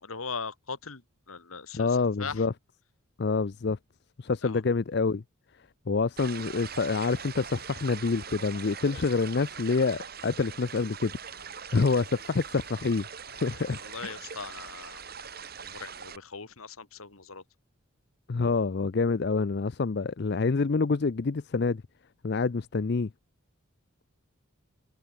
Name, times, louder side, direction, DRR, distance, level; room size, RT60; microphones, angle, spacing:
voice 1, 0.0-1.0 1.3-1.9 2.2-2.4 4.4-4.6 13.8-15.0 15.6-17.4, left 5 dB, 80° left, 2.3 m, -39 dB
voice 2, 1.7-2.5 3.2-3.8 4.2-5.2 5.9-13.0 13.3-14.2 18.3-21.8 22.2-23.1, left 4 dB, 50° left, 0.5 m, -27 dB
sound 1, 6.2-16.2, right 7 dB, 45° right, 3.6 m, -42 dB
head